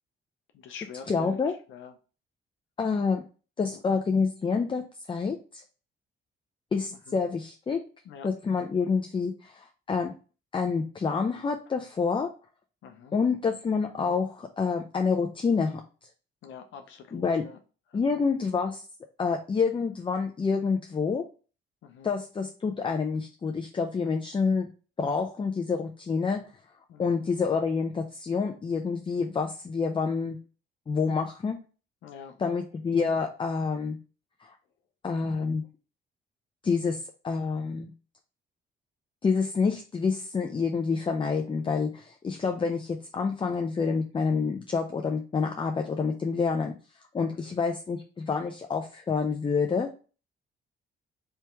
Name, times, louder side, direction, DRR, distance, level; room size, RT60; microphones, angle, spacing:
voice 1, 0.5-1.4 1.7-1.9 3.6-3.8 7.1-7.2 8.0-8.3 12.8-13.1 16.4-17.6 17.9-18.0 21.8-22.1 26.9-27.3 32.0-32.4 47.3-47.5, left 7 dB, 75° left, 5 dB, 0.6 m, -46 dB
voice 2, 1.1-1.5 2.8-3.2 3.6-5.6 6.7-7.8 8.2-10.1 10.5-12.3 13.1-15.8 17.1-17.4 17.9-18.8 19.2-21.2 22.0-24.7 25.0-26.4 27.0-30.4 30.9-31.6 32.4-34.0 34.4-34.5 35.0-35.6 36.6-37.9 39.2-46.8 47.1-49.9, left 5 dB, 25° left, 4 dB, 0.5 m, -28 dB
3.4 x 2.9 x 4.3 m, 0.36 s
cardioid pair, 90°, 20 cm